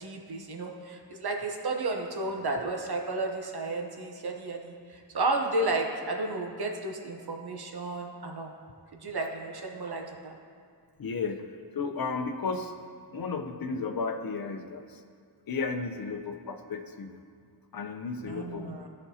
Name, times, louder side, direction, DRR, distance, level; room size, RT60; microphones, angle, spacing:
voice 1, 0.0-8.5 9.0-10.3 18.2-18.9, right 2 dB, 65° right, 2 dB, 0.9 m, -32 dB
voice 2, 11.0-11.4 11.7-12.7 13.1-15.0 15.5-17.1 17.7-18.7, left 4 dB, 55° left, 6 dB, 0.6 m, -33 dB
14.0 x 5.3 x 2.8 m, 2.1 s
wide cardioid pair, 85°, 42 cm